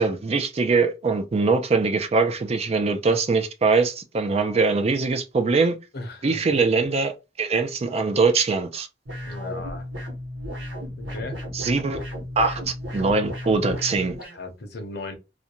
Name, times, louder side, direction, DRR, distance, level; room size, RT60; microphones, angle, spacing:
voice 1, 0.0-5.8 6.2-8.9 11.5-12.0 12.4-14.2, right 4 dB, 35° right, 0.4 m, -22 dB
voice 2, 5.9-6.6 9.3-9.8 11.0-11.4 14.3-15.2, left 2 dB, 60° left, 0.8 m, -36 dB
sound 1, 9.1-14.4, equal, 90° right, 1.1 m, -34 dB
2.5 x 2.2 x 2.8 m
head